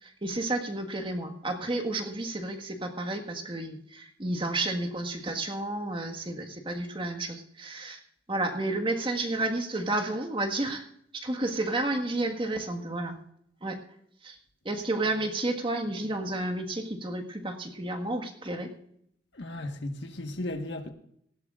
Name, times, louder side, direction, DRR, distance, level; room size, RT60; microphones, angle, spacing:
voice 1, 0.0-8.0 8.3-10.8 11.1-13.1 13.6-13.8 14.2-14.4 14.6-18.7, right 2 dB, 30° right, 1.6 m, -31 dB
voice 2, 19.4-20.9, left 1 dB, 75° left, 1.4 m, -35 dB
18.5 x 16.0 x 2.5 m
head